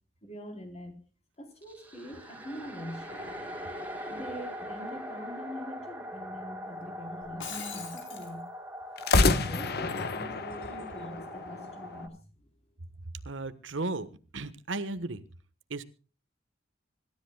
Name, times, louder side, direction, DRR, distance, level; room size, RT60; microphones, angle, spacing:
voice 1, 0.2-0.9 1.4-3.1 4.0-8.4 9.1-12.2, equal, 35° left, 5 dB, 3.9 m, -43 dB
sound 1, 1.6-12.1, equal, 10° right, 3.1 m, -42 dB
sound 2, 3.1-4.9 9.0-12.1, left 3 dB, 55° left, 1.2 m, -30 dB
Shatter, 7.2-8.3, left 6 dB, 85° left, 4.3 m, -41 dB
voice 2, 13.2-15.2 15.7-15.8, right 3 dB, 90° right, 12 dB, 1.3 m, -35 dB
26.0 x 13.0 x 2.3 m, 0.37 s
head